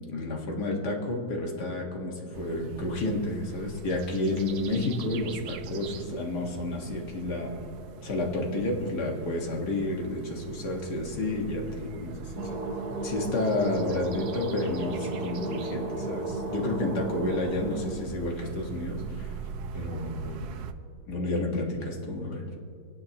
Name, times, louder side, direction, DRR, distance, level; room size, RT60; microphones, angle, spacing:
voice 1, 0.1-7.5 8.0-12.6 13.0-19.4 19.7-20.5 21.1-22.4, left 2 dB, 75° left, 0 dB, 2.3 m, -30 dB
sound 1, 2.3-20.7, right 7 dB, 75° right, 1.2 m, -43 dB
sound 2, 12.4-18.0, right 2 dB, 30° right, 1.0 m, -34 dB
27.5 x 9.7 x 2.9 m, 2.4 s
omnidirectional pair, 1.8 m